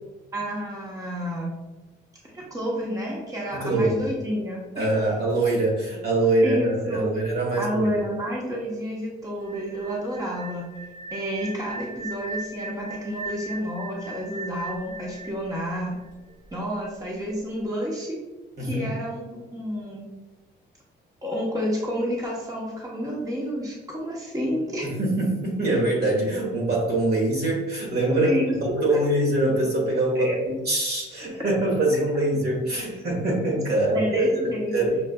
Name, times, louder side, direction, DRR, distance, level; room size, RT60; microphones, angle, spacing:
voice 1, 0.3-1.5 2.3-4.9 6.4-7.0 7.6-10.7 11.1-15.9 16.5-18.2 18.6-20.1 21.2-24.9 28.2-29.0 30.1-30.4 33.9-34.7, equal, 15° right, -3 dB, 0.9 m, -30 dB
voice 2, 3.5-4.1 4.8-7.9 18.6-19.0 24.8-35.0, right 1 dB, 55° right, -2 dB, 1.3 m, -24 dB
sound 1, 9.4-16.3, right 3 dB, 45° left, 0.8 m, -38 dB
5.9 x 2.4 x 2.2 m, 1.1 s
cardioid pair, 90°, 20 cm